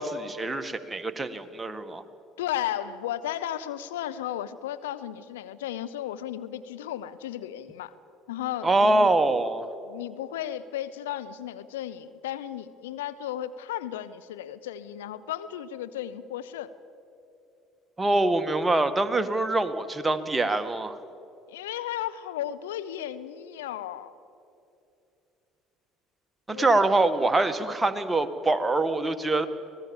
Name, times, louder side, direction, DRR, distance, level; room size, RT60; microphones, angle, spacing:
voice 1, 0.0-2.0 8.6-9.7 18.0-21.0 26.5-29.5, right 2 dB, 20° right, 8 dB, 1.7 m, -24 dB
voice 2, 2.4-7.9 8.3-9.1 9.8-16.7 21.5-24.1 26.5-26.9, left 11 dB, 85° left, 12 dB, 0.8 m, -34 dB
25.5 x 18.5 x 7.2 m, 2.7 s
hypercardioid pair, 60°, 0 cm